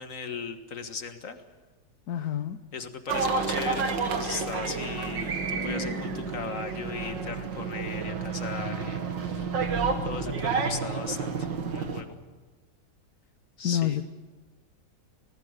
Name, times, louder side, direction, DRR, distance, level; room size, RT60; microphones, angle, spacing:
voice 1, 0.0-1.4 2.7-9.5 10.0-12.2 13.6-14.0, left 5 dB, 50° left, 7 dB, 1.9 m, -38 dB
voice 2, 2.1-2.6 13.6-14.0, left 10 dB, 65° left, 9 dB, 1.3 m, -27 dB
sound 1, 3.1-12.0, right 4 dB, 85° right, 2.3 m, -30 dB
25.5 x 19.0 x 6.7 m, 1.3 s
omnidirectional pair, 1.9 m